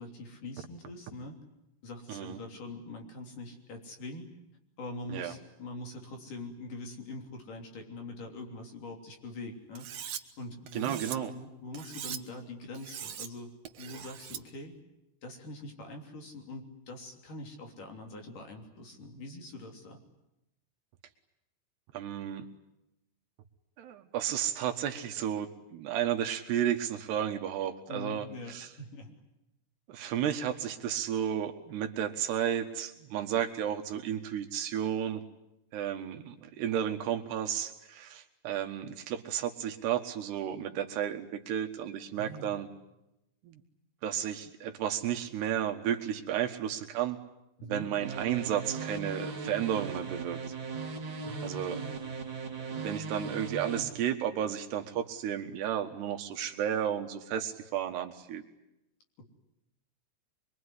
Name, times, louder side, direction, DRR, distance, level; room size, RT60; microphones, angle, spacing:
voice 1, 0.0-1.4 1.8-4.3 4.8-9.9 10.4-13.5 13.8-14.7 15.2-20.0 27.9-29.1 42.2-42.5 47.6-47.9 51.2-52.1 59.2-59.3, left 2 dB, 50° left, 3 dB, 4.5 m, -43 dB
voice 2, 2.1-2.4 5.1-5.3 10.7-11.3 21.9-22.4 23.8-28.7 29.9-35.2 35.7-42.7 43.4-43.6 44.0-47.2 47.6-50.6 51.4-51.8 52.8-58.4, right 10 dB, 70° right, 5 dB, 3.4 m, -33 dB
Cutlery silverware, 9.8-10.2 10.7-11.2 11.7-12.2 12.7-13.3 13.7-14.4, right 9 dB, 90° right, 1.4 m, -41 dB
sound 1, 48.0-53.8, right 4 dB, 30° right, 3.0 m, -38 dB
24.5 x 24.0 x 9.8 m, 0.89 s
omnidirectional pair, 5.0 m